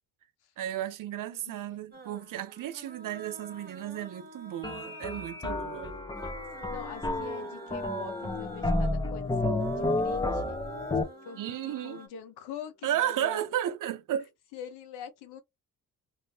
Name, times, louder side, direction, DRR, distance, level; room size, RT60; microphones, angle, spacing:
voice 1, 0.6-5.9 11.4-12.0 12.8-14.3, right 11 dB, 55° right, 0.6 m, -33 dB
sound 1, 1.9-12.1, right 3 dB, 25° right, 1.1 m, -49 dB
sound 2, 4.6-11.0, left 2 dB, 10° left, 0.6 m, -31 dB
sound 3, 5.5-12.3 12.5-13.4, left 3 dB, 30° left, 1.4 m, -52 dB
voice 2, 6.6-10.6 11.2-13.4 14.5-15.4, left 7 dB, 90° left, 0.9 m, -44 dB
2.6 x 2.6 x 3.1 m
cardioid pair, 80°, 38 cm